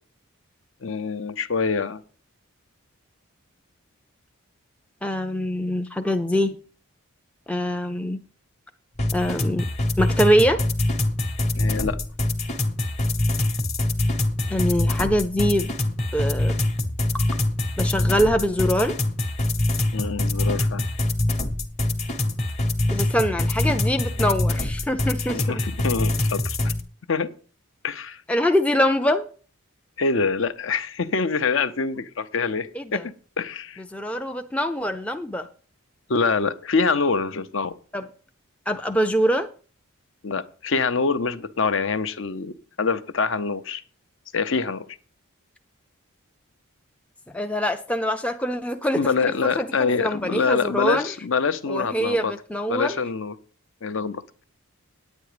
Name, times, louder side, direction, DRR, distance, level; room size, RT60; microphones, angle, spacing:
voice 1, 0.8-2.0 11.5-12.0 19.9-20.8 25.3-26.7 27.1-27.3 27.8-28.2 30.0-33.8 36.1-37.7 40.2-43.8 44.3-44.8 49.0-52.3 52.7-53.3 53.8-54.2, left 4 dB, 60° left, 12 dB, 0.6 m, -25 dB
voice 2, 5.0-6.6 7.5-8.2 9.1-9.7 10.0-10.6 14.5-15.7 16.1-16.6 17.8-18.9 22.9-25.6 28.3-29.3 32.7-33.0 33.9-35.5 37.9-38.1 38.7-39.5 47.3-51.1 51.7-53.0, equal, 5° left, 5 dB, 0.4 m, -24 dB
sound 1, 9.0-26.8, left 1 dB, 30° left, 1.0 m, -24 dB
9.3 x 9.1 x 4.9 m, 0.40 s
head